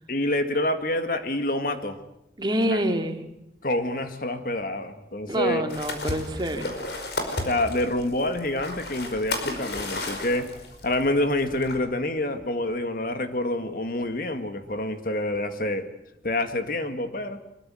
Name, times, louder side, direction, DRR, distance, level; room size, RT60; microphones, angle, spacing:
voice 1, 0.1-2.0 2.7-2.8 3.6-5.6 7.5-10.5 10.8-15.9 16.2-17.4, left 1 dB, 50° left, 8 dB, 2.0 m, -27 dB
voice 2, 2.4-3.2 5.3-6.7, equal, 25° right, 5 dB, 2.5 m, -26 dB
sound 1, 5.7-11.8, left 2 dB, 75° left, 5.1 m, -34 dB
25.0 x 22.5 x 7.8 m, 0.81 s
head